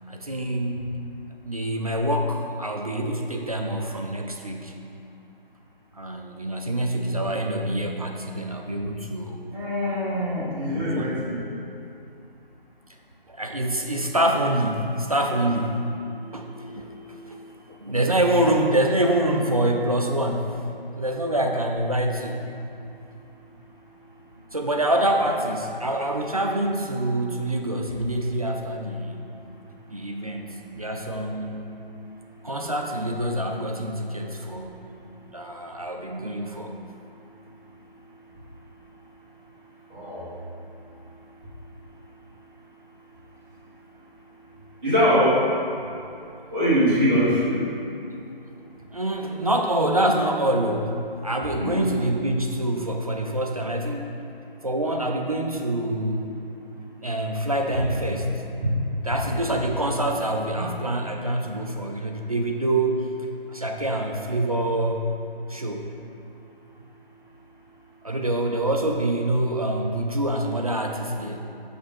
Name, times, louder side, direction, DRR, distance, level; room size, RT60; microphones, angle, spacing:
voice 1, 0.1-0.9 1.4-4.8 5.9-9.5 10.7-11.2 13.3-15.8 16.3-16.5 16.7-17.4 17.7-20.5 21.0-22.4 24.5-29.2 29.9-31.7 32.4-34.8 35.3-36.7 48.1-48.2 48.9-50.9 51.2-54.2 54.6-56.3 57.0-58.3 59.0-63.1 63.5-65.1 65.5-65.9 68.0-71.4, right 1 dB, 40° right, 2 dB, 0.4 m, -26 dB
voice 2, 9.5-11.5 16.3-17.2 25.1-25.2 39.9-40.3 44.8-45.4 46.5-47.6 51.5-51.9 57.4-57.8 60.5-60.7, equal, 15° right, -15 dB, 1.5 m, -24 dB
5.8 x 5.1 x 4.5 m, 2.6 s
figure-of-eight pair, 155°, 30 cm